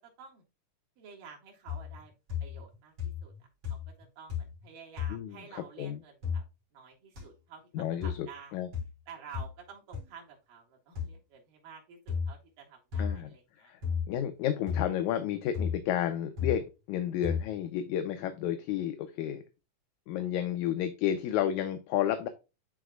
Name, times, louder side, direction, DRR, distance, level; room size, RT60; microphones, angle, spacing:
voice 1, 1.0-2.1 2.4-3.3 3.7-6.4 6.7-8.6 9.1-13.7, right 6 dB, 90° right, 3.5 m, -51 dB
sound 1, 1.7-2.0 2.3-2.7 3.0-3.4 3.6-4.0 4.3-4.6 5.0-5.2 6.2-6.4 7.2-7.3 8.0-8.2 8.7-8.9 9.3-9.5 9.9-10.0 11.0-11.1 12.1-12.3 12.9-13.2 13.8-14.1 14.7-14.9 15.5-15.8 16.4-16.6 17.2-17.5, left 7 dB, 45° right, 3.7 m, -33 dB
voice 2, 5.1-6.0 7.7-8.7 13.0-13.3 13.6-13.8 14.1-19.4 20.1-22.3, left 10 dB, 75° left, 1.9 m, -31 dB
11.0 x 4.0 x 2.3 m
omnidirectional pair, 3.7 m